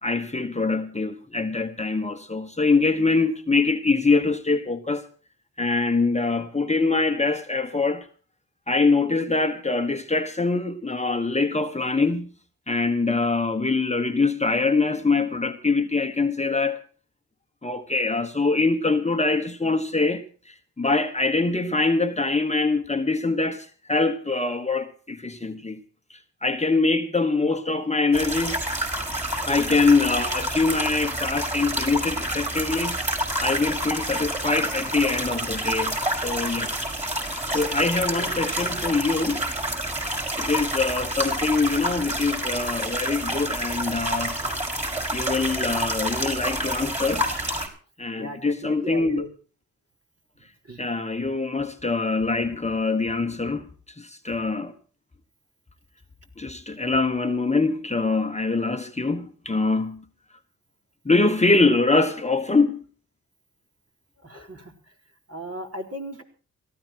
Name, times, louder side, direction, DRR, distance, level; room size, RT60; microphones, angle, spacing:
voice 1, 0.0-5.1 5.6-8.1 8.7-12.3 12.7-16.8 17.6-25.8 26.1-28.6 29.5-33.0 33.4-36.7 37.5-39.5 40.4-44.4 45.1-47.2 48.0-49.2 50.8-53.7 54.0-54.7 56.4-60.0 61.0-62.8, left 3 dB, 20° left, 1.4 m, -24 dB
sound 1, 28.1-47.7, right 1 dB, 20° right, 5.4 m, -28 dB
voice 2, 48.2-49.3 50.7-50.9 64.2-64.7 65.3-66.2, right 1 dB, 40° right, 4.4 m, -36 dB
17.5 x 15.0 x 4.6 m
supercardioid pair, 50°, 36 cm